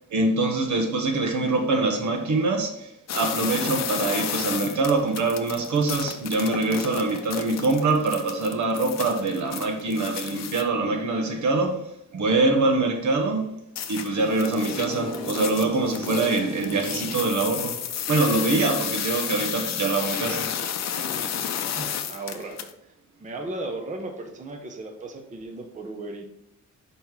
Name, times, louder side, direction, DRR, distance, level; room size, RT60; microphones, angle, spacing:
voice 1, 0.1-13.5 13.9-20.5, right 3 dB, 65° right, 1.2 m, -24 dB
sound 1, 3.1-10.6 13.8-22.7, left 8 dB, 55° left, 0.6 m, -32 dB
sound 2, 14.3-18.6, equal, 5° left, 1.4 m, -37 dB
voice 2, 21.7-22.6 23.2-26.3, right 2 dB, 25° right, 0.7 m, -35 dB
5.5 x 4.1 x 4.5 m
wide cardioid pair, 155°, 32 cm